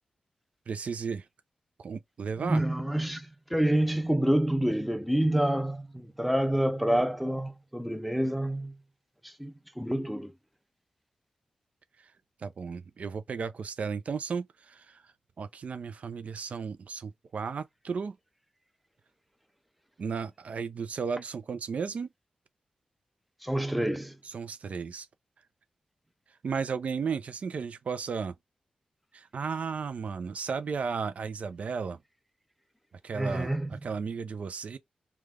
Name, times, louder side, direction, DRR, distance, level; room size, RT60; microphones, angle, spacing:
voice 1, 0.7-1.3 1.8-2.6 12.4-15.0 15.4-18.2 20.0-22.1 23.7-23.9 24.2-25.1 26.4-28.3 29.1-32.0 33.0-34.8, right 5 dB, 60° right, 0.4 m, -34 dB
voice 2, 2.4-8.7 9.2-10.3 23.4-24.1 33.1-33.7, right 1 dB, ahead, 0.5 m, -28 dB
3.2 x 2.3 x 3.5 m
wide cardioid pair, 95°, 3 cm